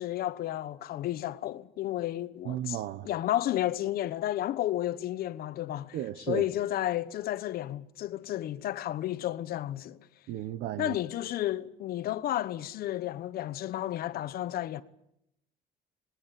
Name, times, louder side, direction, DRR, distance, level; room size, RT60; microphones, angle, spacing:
voice 1, 0.0-10.0 10.8-14.8, left 13 dB, 60° left, 1.1 m, -32 dB
voice 2, 2.5-3.1 5.9-6.4 10.3-10.9, right 12 dB, 70° right, 1.1 m, -34 dB
27.0 x 20.5 x 8.5 m
cardioid pair, 140°, 18 cm